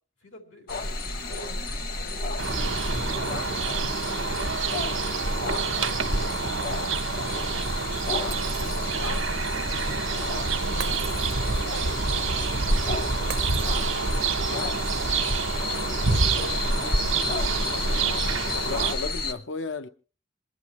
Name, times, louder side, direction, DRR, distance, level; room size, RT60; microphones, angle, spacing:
voice 1, 0.2-8.1 8.4-18.7, left 1 dB, 85° left, 3.6 m, -48 dB
sound 1, 0.7-19.3, left 2 dB, 50° left, 1.1 m, -30 dB
sound 2, 2.4-18.9, right 5 dB, 80° right, 1.1 m, -28 dB
Shatter, 8.3-9.2 10.8-11.8 13.3-14.3, right 9 dB, 55° right, 0.6 m, -40 dB
voice 2, 8.6-9.0 12.4-12.5 15.6-15.7 17.5-18.2 18.5-19.9, left 4 dB, 70° left, 0.7 m, -36 dB
27.0 x 10.0 x 3.1 m
head